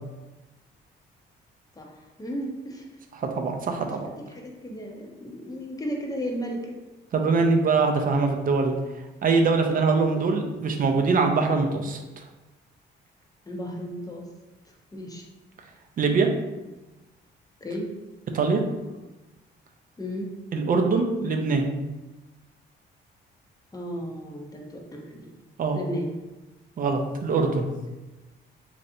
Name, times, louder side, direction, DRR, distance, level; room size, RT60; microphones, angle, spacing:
voice 1, 1.7-3.0 3.8-6.8 10.1-10.3 13.5-14.3 14.9-15.3 17.6-17.9 20.0-20.3 23.7-25.3 25.7-26.1, equal, 20° left, 0 dB, 0.6 m, -34 dB
voice 2, 3.2-4.1 7.1-8.7 9.2-12.0 16.0-16.3 18.3-18.6 20.5-21.6 25.6-25.8 26.8-27.7, right 4 dB, 45° right, 4 dB, 0.5 m, -23 dB
3.2 x 2.6 x 2.6 m, 1.1 s
cardioid pair, 90°, 20 cm